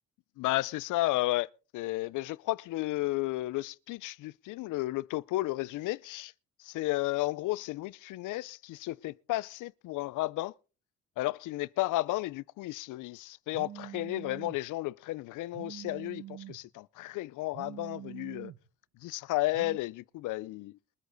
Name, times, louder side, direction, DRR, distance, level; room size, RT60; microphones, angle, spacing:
voice 1, 0.4-6.3 6.6-10.5 11.2-18.5 19.0-20.7, left 18 dB, 85° left, 0.5 m, -33 dB
Telephone, 13.5-14.6 15.5-16.6 17.5-18.6 19.5-19.8, right 13 dB, 80° right, 1.6 m, -45 dB
22.0 x 8.1 x 4.0 m
cardioid pair, 90°, 30 cm